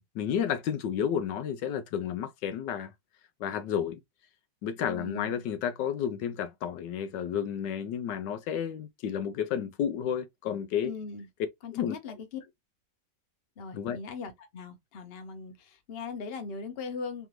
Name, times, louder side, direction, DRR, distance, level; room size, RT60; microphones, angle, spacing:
voice 1, 0.0-2.9 3.4-4.0 4.6-10.9 11.7-12.0 13.7-14.0, left 8 dB, 80° left, 1.2 m, -31 dB
voice 2, 4.9-5.4 10.8-11.3 11.6-12.4 13.6-17.3, left 4 dB, 40° left, 1.0 m, -39 dB
3.6 x 3.4 x 3.0 m
omnidirectional pair, 1.9 m